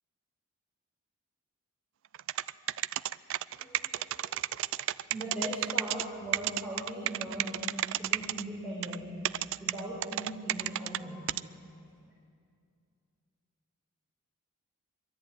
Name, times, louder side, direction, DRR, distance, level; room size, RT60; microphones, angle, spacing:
sound 1, 2.1-6.0 6.3-8.4 8.8-9.0 9.2-11.0 11.3-11.4, right 13 dB, 60° right, 0.4 m, -31 dB
voice 1, 3.5-4.4 5.1-7.7 8.0-9.1 9.6-11.4, right 1 dB, 5° right, -8 dB, 4.8 m, -39 dB
23.0 x 13.5 x 9.4 m, 2.4 s
head